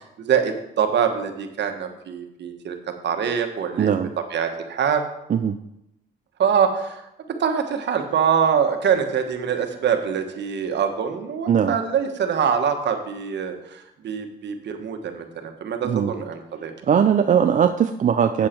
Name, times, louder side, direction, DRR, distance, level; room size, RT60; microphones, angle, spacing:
voice 1, 0.2-2.8 3.0-3.9 4.3-5.0 6.4-7.0 7.3-16.7, right 7 dB, 60° right, 6 dB, 1.3 m, -24 dB
voice 2, 3.8-4.1 5.3-5.6 11.5-11.8 15.8-16.1 16.8-18.5, right 8 dB, 40° right, 8 dB, 0.4 m, -19 dB
7.9 x 7.4 x 4.4 m, 0.84 s
cardioid pair, 90°, 20 cm